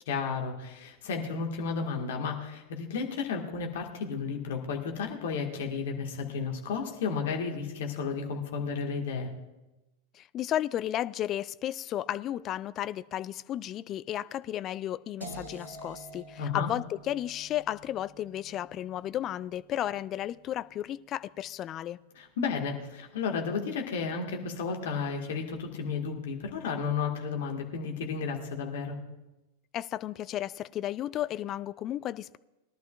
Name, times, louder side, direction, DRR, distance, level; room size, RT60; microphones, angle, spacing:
voice 1, 0.1-9.3 16.4-16.7 22.2-29.0, left 5 dB, 55° left, 1.9 m, -33 dB
voice 2, 10.1-22.0 29.7-32.4, left 12 dB, 30° left, 0.3 m, -33 dB
sound 1, 15.2-21.1, right 1 dB, 80° right, 2.3 m, -49 dB
21.0 x 11.5 x 2.5 m
figure-of-eight pair, 90°, 0 cm